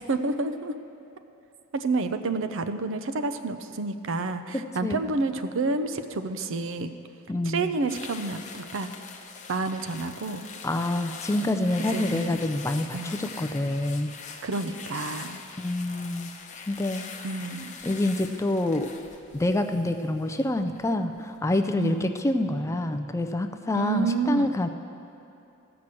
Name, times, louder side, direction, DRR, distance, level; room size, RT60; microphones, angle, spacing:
voice 1, 0.1-0.7 1.7-6.9 7.4-8.9 9.5-10.5 11.8-12.4 12.9-13.2 14.4-15.4 17.2-17.7 21.8-22.2 23.7-24.5, right 3 dB, 60° right, 9 dB, 0.6 m, -29 dB
voice 2, 4.5-5.0 7.3-7.7 10.6-14.1 15.6-16.3 16.7-17.0 17.8-18.9 19.3-24.7, left 1 dB, 15° left, 7 dB, 0.4 m, -27 dB
Cardboard creased, 7.9-21.2 21.6-21.9, left 5 dB, 35° left, 0.8 m, -43 dB
14.5 x 5.9 x 7.6 m, 2.8 s
head